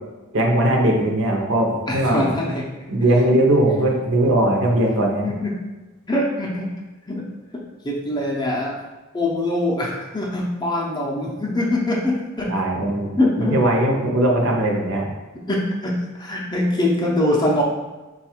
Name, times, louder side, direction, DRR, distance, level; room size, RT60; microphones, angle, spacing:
voice 1, 0.3-2.3 2.9-5.3 12.5-13.1 13.5-15.0, right 1 dB, 60° right, 0 dB, 0.7 m, -19 dB
voice 2, 1.9-2.7 5.2-5.5 6.1-6.7 7.1-7.2 7.8-8.8 9.1-12.5 13.2-13.6 15.4-17.6, left 1 dB, 20° left, -3 dB, 0.5 m, -23 dB
4.1 x 2.3 x 4.3 m, 1.1 s
head